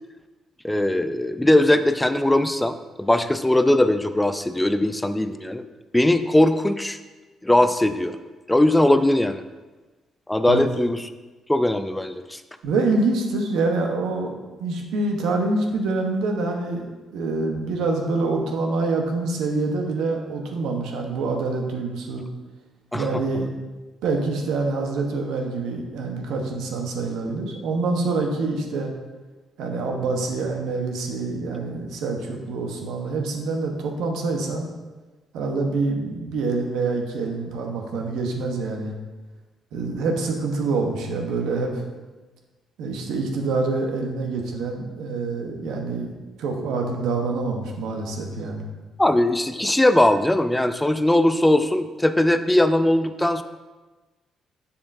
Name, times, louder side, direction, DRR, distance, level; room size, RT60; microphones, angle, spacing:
voice 1, 0.6-5.6 5.9-7.0 7.4-8.2 8.5-9.4 10.3-11.0 11.5-12.4 22.9-23.2 49.0-53.4, left 1 dB, 10° left, 10 dB, 0.3 m, -20 dB
voice 2, 12.6-22.2 22.9-23.5 24.0-28.9 29.6-34.7 35.3-38.9 39.7-41.8 42.8-46.1 46.4-48.6, right 3 dB, 85° right, 2 dB, 1.0 m, -26 dB
7.1 x 7.0 x 2.6 m, 1.2 s
cardioid pair, 90°, 0 cm